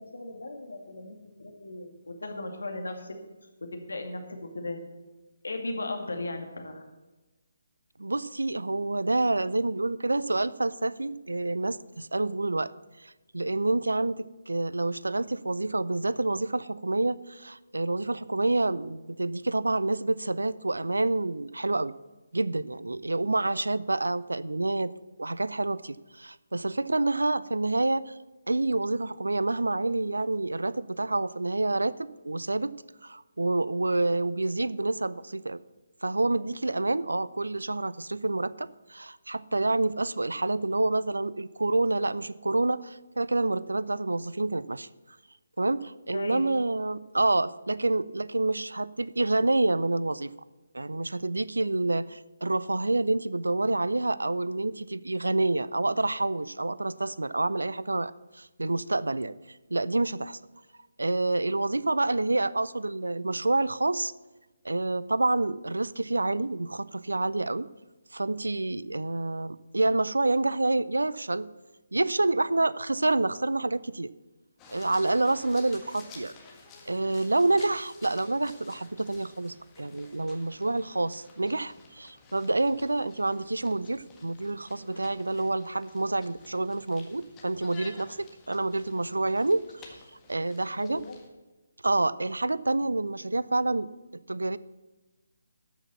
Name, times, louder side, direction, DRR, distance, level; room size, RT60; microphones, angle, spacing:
voice 1, 0.0-3.2 3.7-4.8 5.4-6.9 46.1-46.4 90.8-91.2, left 2 dB, 65° left, 4 dB, 2.1 m, -37 dB
voice 2, 8.0-12.7 13.0-21.9 22.3-24.9 25.2-28.2 28.5-32.7 33.0-35.6 36.0-44.9 45.6-50.3 50.7-60.4 61.0-64.1 64.6-67.7 68.1-71.5 71.9-74.1 74.7-76.3 76.9-89.8 90.3-91.0 91.8-93.9 94.3-94.6, right 2 dB, 70° right, 19 dB, 0.4 m, -28 dB
sound 1, 74.6-91.3, left 4 dB, 15° left, 1.6 m, -53 dB
13.5 x 6.2 x 7.1 m, 1.2 s
figure-of-eight pair, 145°, 0 cm